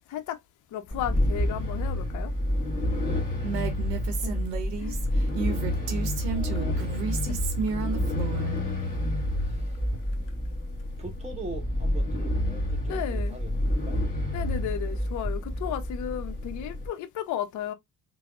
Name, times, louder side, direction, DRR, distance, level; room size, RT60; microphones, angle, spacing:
voice 1, 0.7-2.3 4.2-4.5 4.8-5.0 7.3-7.4 12.9-13.4 14.3-17.7, left 10 dB, 40° left, 0.5 m, -34 dB
sound 1, 0.9-16.9, left 1 dB, 15° left, 1.9 m, -29 dB
voice 2, 3.0-4.0 5.4-7.1 7.6-8.1 9.3-9.8 10.1-10.7 11.0-13.5 13.8-14.0, right 2 dB, 15° right, 1.1 m, -44 dB
Female speech woman speaking, 3.4-8.5, right 5 dB, 90° right, 0.7 m, -32 dB
sound 2, 8.8-9.2 9.9-10.4 11.0-11.5 12.1-12.5 13.2-13.6 14.2-14.5 15.2-15.6, right 4 dB, 40° right, 0.8 m, -42 dB
3.4 x 2.0 x 2.2 m
hypercardioid pair, 60°, 49 cm